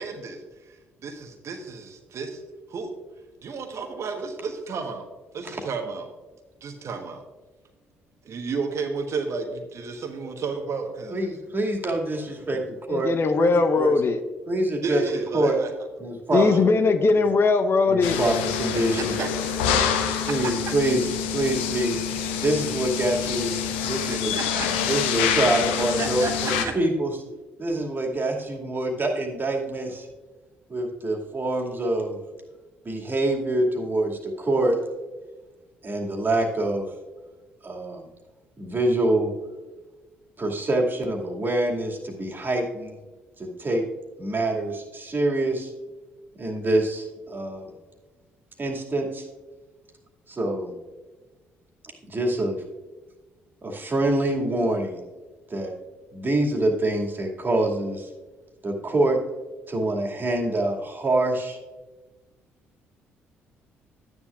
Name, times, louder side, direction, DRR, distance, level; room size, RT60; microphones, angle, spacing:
voice 1, 0.0-2.4 2.7-2.9 3.4-5.1 5.3-6.1 6.6-7.2 8.2-11.5 14.8-15.7 16.3-16.6 18.7-20.7 24.0-24.7 26.0-26.7, right 4 dB, 50° right, 5 dB, 1.2 m, -32 dB
voice 2, 11.1-13.9 14.5-15.0 15.3-15.6 16.0-16.7 17.9-19.1 20.3-21.9 22.4-23.5 23.9-24.3 24.9-27.1 27.6-30.1 30.7-32.2 32.8-34.8 35.8-36.9 37.6-38.1 38.6-39.3 40.4-43.0 43.4-43.8 44.2-45.7 46.4-47.7 48.6-49.2 50.3-50.7 52.1-52.6 53.6-55.0 55.5-55.7 56.1-58.1 58.6-59.2 59.7-61.6, right 1 dB, 35° right, 0 dB, 2.3 m, -25 dB
voice 3, 12.9-14.2 16.3-18.2, left 4 dB, 40° left, 8 dB, 0.9 m, -20 dB
sound 1, 18.0-26.7, left 7 dB, 75° left, 0.7 m, -26 dB
12.5 x 9.8 x 2.5 m, 1.2 s
figure-of-eight pair, 45°, 6 cm